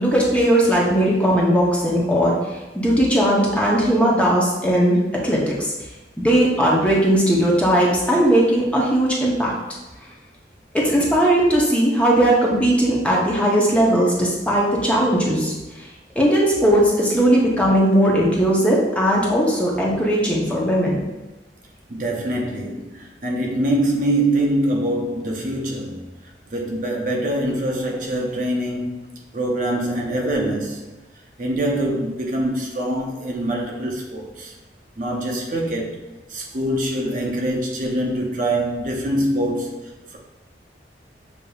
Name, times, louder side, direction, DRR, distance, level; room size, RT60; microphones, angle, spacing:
voice 1, 0.0-5.0 5.2-5.7 6.2-9.5 10.7-15.9 16.2-21.0, right 1 dB, 5° left, 0.7 m, -18 dB
voice 2, 21.9-26.0 26.5-29.0 29.3-30.8 31.4-34.5 35.0-36.0 36.3-40.2, right 1 dB, 45° right, 0.6 m, -24 dB
6.7 x 2.7 x 2.3 m
head